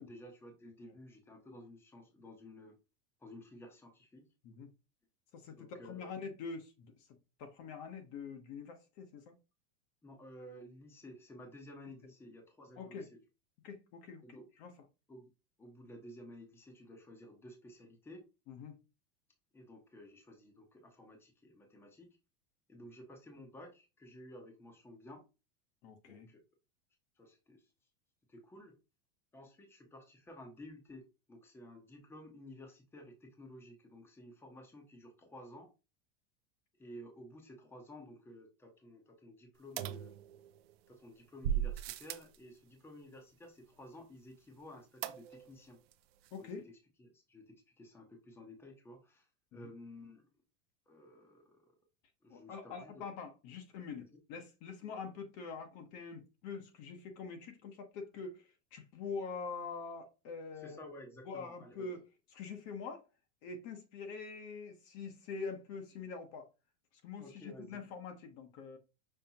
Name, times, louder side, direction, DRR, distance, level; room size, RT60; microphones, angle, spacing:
voice 1, 0.0-2.7 3.2-4.3 5.5-6.2 10.0-13.2 14.2-14.5 15.1-15.3 15.6-18.3 19.5-22.2 22.7-25.2 26.0-26.4 27.2-27.7 28.3-28.8 29.3-35.7 36.8-40.1 40.9-45.8 46.4-50.2 50.9-51.8 52.2-53.0 60.6-61.9 67.2-67.8, left 1 dB, 10° left, 0.9 m, -53 dB
voice 2, 5.3-6.9 7.4-9.3 12.8-13.1 13.6-14.2 14.6-14.7 18.5-18.8 25.8-26.3 46.3-46.7 49.5-49.7 52.3-58.4 58.7-60.9 61.3-62.0 62.3-63.0 63.4-66.5 67.0-68.8, left 5 dB, 45° left, 1.0 m, -45 dB
sound 1, 39.8-40.7 41.4-42.4 45.0-45.6 45.9-46.0 46.3-46.4, right 10 dB, 75° right, 0.6 m, -37 dB
5.6 x 3.3 x 2.9 m
supercardioid pair, 150°, 31 cm